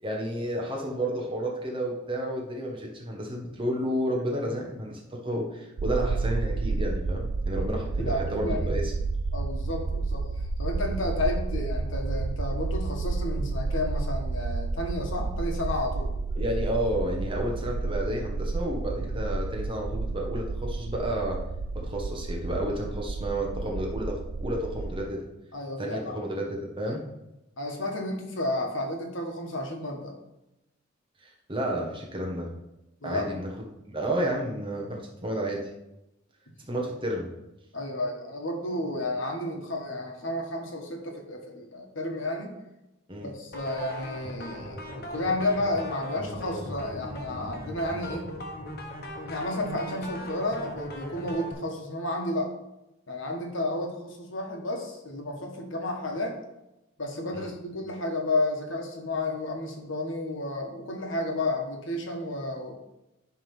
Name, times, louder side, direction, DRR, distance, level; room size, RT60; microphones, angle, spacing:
voice 1, 0.0-8.9 16.3-21.4 21.7-25.2 25.8-27.0 31.2-32.5 33.0-35.6 36.6-37.3 43.1-43.3 57.3-57.5, right 1 dB, 25° right, 0 dB, 1.3 m, -31 dB
sound 1, 5.8-25.0, right 3 dB, 65° right, 0.5 m, -31 dB
voice 2, 8.0-8.8 9.3-10.3 10.6-16.1 25.5-26.1 26.8-26.9 27.6-30.1 33.0-33.3 37.7-42.5 43.2-48.3 49.2-52.5 53.1-56.4 57.0-62.7, left 1 dB, 70° left, 2 dB, 1.5 m, -32 dB
sound 2, 43.5-51.5, equal, 50° left, 1.3 m, -39 dB
10.5 x 3.6 x 5.5 m, 0.92 s
head